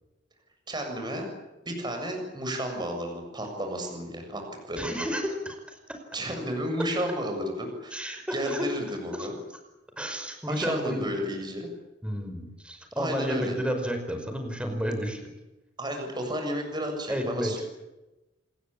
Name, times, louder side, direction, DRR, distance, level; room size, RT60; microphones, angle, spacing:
voice 1, 0.7-1.3 1.6-5.1 6.1-9.3 10.5-11.7 13.0-13.6 15.8-17.6, equal, 25° right, 3 dB, 7.3 m, -32 dB
voice 2, 4.8-6.0 7.9-8.7 9.1-9.3 10.0-11.1 12.0-15.2 17.1-17.6, equal, 5° right, 5 dB, 5.2 m, -31 dB
27.5 x 20.5 x 8.7 m, 1.0 s
head